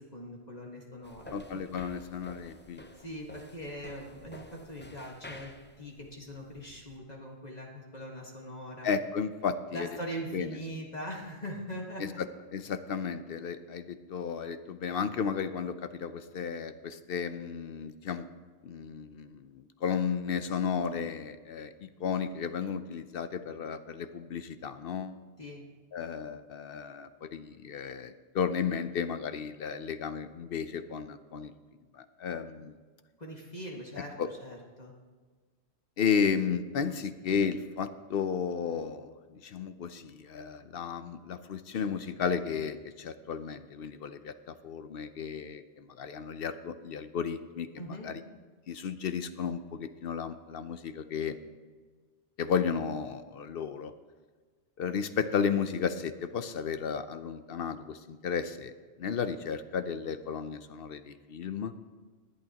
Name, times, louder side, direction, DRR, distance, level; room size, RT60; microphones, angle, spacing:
voice 1, 0.0-1.2 1.5-1.7 2.9-5.5 5.8-8.9 9.7-12.0 25.4-25.6 33.2-34.9 47.8-48.1, equal, 40° left, -1 dB, 1.7 m, -41 dB
sound 1, 1.0-7.0, left 1 dB, 15° left, 0.5 m, -51 dB
voice 2, 1.3-2.9 8.8-9.9 10.3-10.5 12.0-12.3 12.5-18.3 18.6-25.2 25.9-31.5 31.9-32.8 34.2-34.3 36.0-47.7 48.0-48.2 48.7-51.4 52.4-53.9 54.8-58.7 59.0-61.7, left 6 dB, 65° left, 11 dB, 0.8 m, -33 dB
21.5 x 8.5 x 2.9 m, 1.5 s
omnidirectional pair, 1.1 m